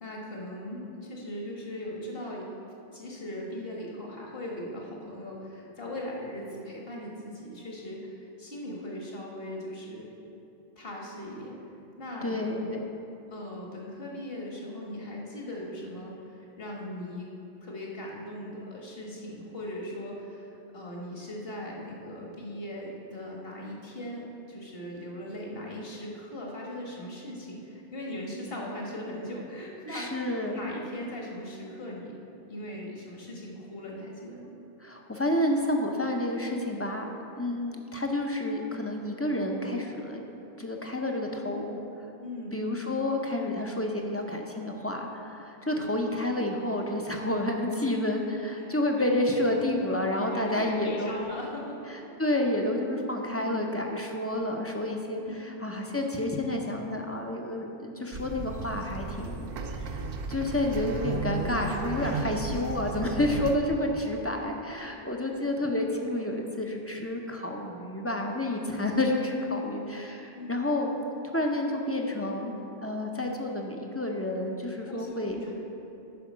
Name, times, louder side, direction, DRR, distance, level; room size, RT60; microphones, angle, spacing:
voice 1, 0.0-2.5 2.9-10.1 10.8-11.6 12.0-12.7 13.3-17.3 17.6-32.2 32.5-34.5 42.2-42.6 45.7-45.9 48.6-48.7 49.0-49.1 50.3-52.1 55.2-55.4 64.8-64.9 68.5-68.9 70.3-70.6 74.8-75.5, left 1 dB, 55° left, -2 dB, 1.7 m, -39 dB
voice 2, 12.2-12.8 29.9-30.6 34.8-40.2 40.6-41.8 42.5-51.1 52.2-59.5 59.8-60.0 60.3-70.9 71.3-72.5 72.8-75.4, left 1 dB, 15° left, 1 dB, 0.6 m, -30 dB
sound 1, 58.1-63.6, right 4 dB, 60° right, 0.7 m, -34 dB
10.5 x 4.9 x 6.1 m, 2.8 s
omnidirectional pair, 1.2 m